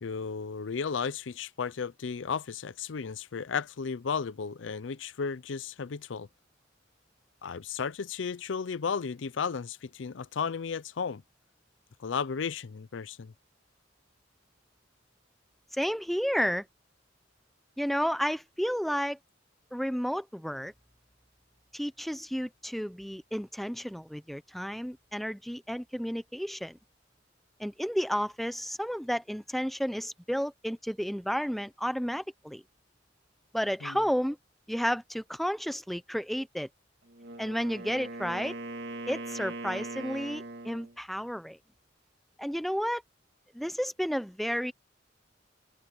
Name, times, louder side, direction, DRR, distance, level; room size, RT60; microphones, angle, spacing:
voice 1, 0.0-6.3 7.4-11.2 12.0-13.3 33.8-34.0, left 6 dB, 80° left, 0.5 m, -34 dB
voice 2, 15.7-16.7 17.8-19.2 19.7-20.7 21.7-26.8 27.6-32.6 33.5-34.4 34.7-36.7 37.4-38.5 39.1-41.6 42.4-43.0 43.5-44.7, equal, ahead, 0.7 m, -32 dB
Wind instrument woodwind instrument, 37.1-41.0, right 2 dB, 60° right, 2.2 m, -40 dB
open air
head